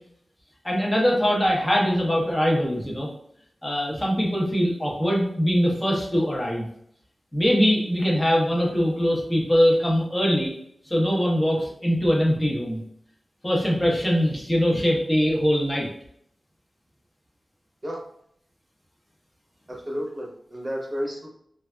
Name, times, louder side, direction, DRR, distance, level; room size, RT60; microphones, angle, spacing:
voice 1, 0.6-3.1 3.6-6.7 7.3-10.5 10.9-12.8 13.4-15.9, equal, 15° left, -3 dB, 0.8 m, -22 dB
voice 2, 19.7-21.3, equal, 30° right, -2 dB, 0.8 m, -32 dB
3.2 x 2.4 x 2.2 m, 0.70 s
wide cardioid pair, 110°, 0 cm